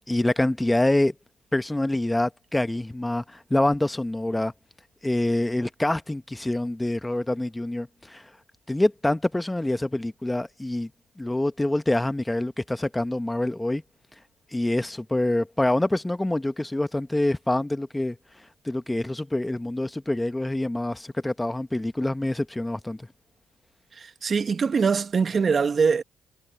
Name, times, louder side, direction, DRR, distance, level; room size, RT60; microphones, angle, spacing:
voice 1, 0.1-1.1 1.5-4.5 5.0-8.3 8.7-10.9 11.2-13.8 14.5-18.2 18.6-23.1, left 1 dB, 10° left, 1.1 m, -26 dB
voice 2, 24.0-26.0, right 5 dB, 40° right, 1.3 m, -23 dB
supercardioid pair, 70°, 0 cm